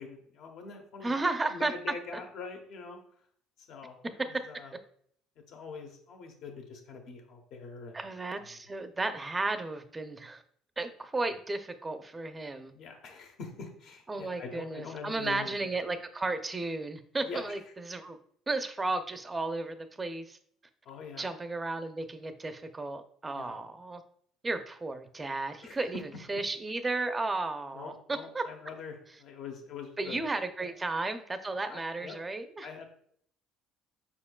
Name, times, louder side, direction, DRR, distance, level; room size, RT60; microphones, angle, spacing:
voice 1, 0.0-3.0 3.6-4.7 5.5-8.1 12.7-15.7 17.2-17.5 20.8-21.3 23.3-23.6 25.6-25.8 27.7-30.2 30.6-30.7 31.7-32.2 32.6-32.9, left 5 dB, 65° left, 3 dB, 1.0 m, -44 dB
voice 2, 1.0-1.7 7.9-10.4 10.8-12.7 14.1-18.2 18.5-20.4 21.2-24.0 24.4-26.0 26.3-27.9 28.3-28.4 30.0-32.7, right 2 dB, 20° right, 9 dB, 0.5 m, -34 dB
5.2 x 4.3 x 2.3 m, 0.63 s
supercardioid pair, 95°, 0 cm